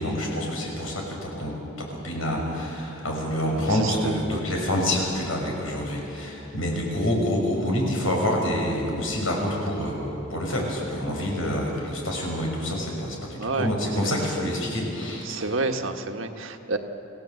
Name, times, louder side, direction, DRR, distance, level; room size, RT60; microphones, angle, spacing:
voice 1, 0.0-1.5 2.0-15.3, left 1 dB, 85° left, 0 dB, 6.1 m, -27 dB
voice 2, 3.5-4.6 13.4-13.7 14.0-14.1 15.2-16.8, right 3 dB, 75° right, 5 dB, 1.6 m, -30 dB
27.0 x 17.0 x 7.9 m, 3.0 s
head